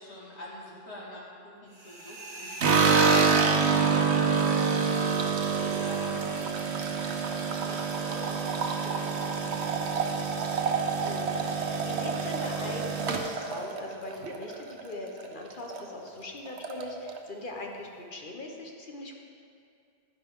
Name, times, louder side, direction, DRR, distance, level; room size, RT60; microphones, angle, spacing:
voice 1, 0.0-10.0, left 1 dB, 90° left, -6 dB, 2.5 m, -44 dB
sound 1, 1.7-4.4, right 1 dB, 45° right, 1.6 m, -41 dB
sound 2, 2.6-14.9 15.2-15.8 16.1-16.2 16.5-17.2, right 5 dB, 90° right, 1.1 m, -27 dB
voice 2, 11.0-19.2, left 2 dB, 50° left, 1 dB, 1.3 m, -40 dB
11.0 x 10.5 x 3.7 m, 2.4 s
omnidirectional pair, 1.1 m